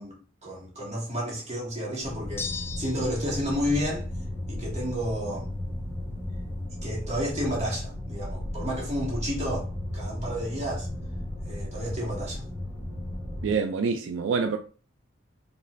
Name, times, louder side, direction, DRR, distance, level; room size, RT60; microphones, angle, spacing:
voice 1, 0.0-2.5 2.8-4.1 4.5-5.5 6.7-9.7 9.9-10.9 11.4-12.4, equal, 35° right, 1.7 m, -31 dB
sound 1, 2.0-13.6, left 1 dB, 10° right, 1.2 m, -35 dB
sound 2, 2.4-3.3, left 6 dB, 10° left, 0.3 m, -36 dB
voice 2, 13.4-14.6, right 5 dB, 80° right, 0.4 m, -26 dB
5.3 x 2.9 x 2.5 m
head